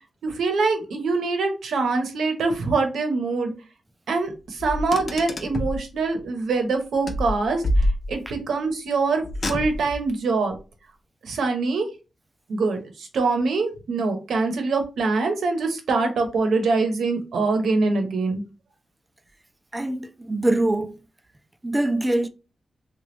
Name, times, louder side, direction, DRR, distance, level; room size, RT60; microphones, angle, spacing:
voice 1, 0.2-3.5 4.1-10.6 11.2-11.9 12.5-18.4, right 3 dB, 80° right, 0.8 m, -24 dB
Car, 4.6-5.8 7.1-8.4 9.2-10.1, left 1 dB, 40° left, 0.5 m, -26 dB
voice 2, 19.7-21.0 21.6-22.3, right 1 dB, 15° right, 0.3 m, -23 dB
3.0 x 2.3 x 3.1 m
wide cardioid pair, 130°, 0 cm